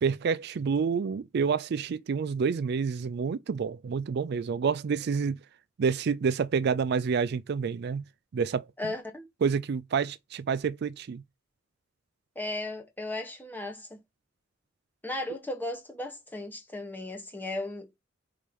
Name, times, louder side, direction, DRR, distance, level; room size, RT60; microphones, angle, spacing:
voice 1, 0.0-5.4 5.8-8.0 8.3-8.7 9.4-11.2, right 6 dB, 55° right, 0.4 m, -28 dB
voice 2, 8.8-9.2 12.3-14.0 15.0-18.0, left 2 dB, 10° left, 1.2 m, -36 dB
5.0 x 4.2 x 5.3 m
head